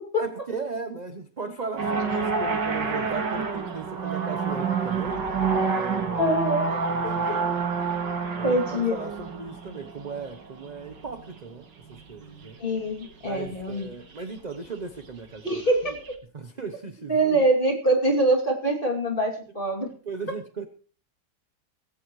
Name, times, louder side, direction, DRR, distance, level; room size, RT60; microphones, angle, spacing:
voice 1, 0.2-5.2 5.7-6.3 6.7-7.5 8.3-12.6 13.2-16.0 16.3-17.4 20.0-20.7, right 4 dB, 35° right, 8 dB, 0.8 m, -37 dB
sound 1, 1.8-11.4 11.9-12.5 13.0-13.1 13.4-13.5 13.8-13.9 14.3-14.4 15.4-16.1, right 5 dB, 90° right, 2.4 m, -28 dB
voice 2, 6.2-6.7 7.3-7.4 8.4-8.9 12.6-14.0 15.4-16.0 17.1-19.9, right 1 dB, 30° left, 0 dB, 2.9 m, -24 dB
17.5 x 15.5 x 3.1 m, 0.41 s
omnidirectional pair, 1.9 m